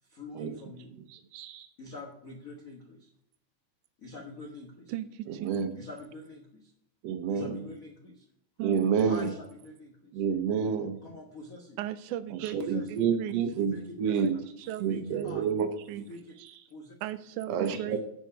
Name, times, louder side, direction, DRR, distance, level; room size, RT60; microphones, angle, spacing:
voice 1, 0.0-0.9 1.8-3.1 4.0-4.9 5.7-6.7 7.3-8.2 9.1-10.2 11.0-11.8 12.5-12.9 13.6-14.4 14.9-15.4 16.1-16.4 16.7-16.9 17.8-18.0, left 2 dB, 65° left, 0.8 m, -45 dB
voice 2, 1.1-1.7 5.3-5.7 7.0-7.7 8.6-9.3 10.1-11.0 12.3-15.7 16.0-16.1 17.5-18.0, right 6 dB, 70° right, 1.8 m, -29 dB
voice 3, 4.9-5.8 8.6-9.2 11.8-13.3 14.2-14.3 14.7-16.1 17.0-18.0, right 13 dB, 85° right, 2.1 m, -37 dB
9.3 x 5.2 x 5.8 m
omnidirectional pair, 3.5 m